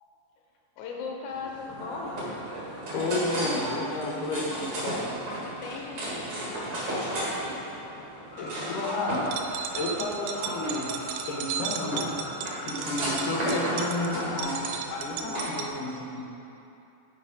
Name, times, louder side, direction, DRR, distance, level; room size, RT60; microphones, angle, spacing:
voice 1, 0.8-2.2 5.4-7.3 8.2-8.8, left 4 dB, 85° left, 0 dB, 3.1 m, -39 dB
sound 1, 1.3-15.6, right 1 dB, 50° right, 1.6 m, -34 dB
voice 2, 2.9-5.1 8.4-10.9 11.3-12.2 12.7-16.2, left 2 dB, 70° left, -2 dB, 2.1 m, -32 dB
sound 2, 8.3-14.4, left 1 dB, 45° left, 1.7 m, -41 dB
sound 3, 9.2-15.7, right 8 dB, 85° right, 2.7 m, -35 dB
8.0 x 5.2 x 5.0 m, 2.8 s
omnidirectional pair, 5.1 m